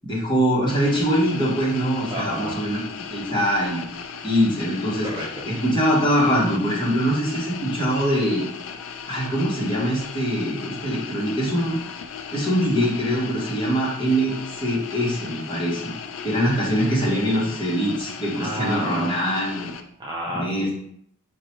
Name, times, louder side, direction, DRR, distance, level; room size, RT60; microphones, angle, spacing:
voice 1, 0.0-3.8 4.2-5.1 5.4-8.4 9.1-11.8 12.3-15.9 16.2-19.7 20.3-20.7, equal, 20° left, -5 dB, 1.1 m, -23 dB
sound 1, 0.7-19.8, left 6 dB, 70° left, 0.4 m, -37 dB
voice 2, 2.1-2.6 5.0-5.5 18.3-19.2 20.0-20.7, equal, 20° right, -4 dB, 0.3 m, -31 dB
4.7 x 2.2 x 3.0 m, 0.70 s
head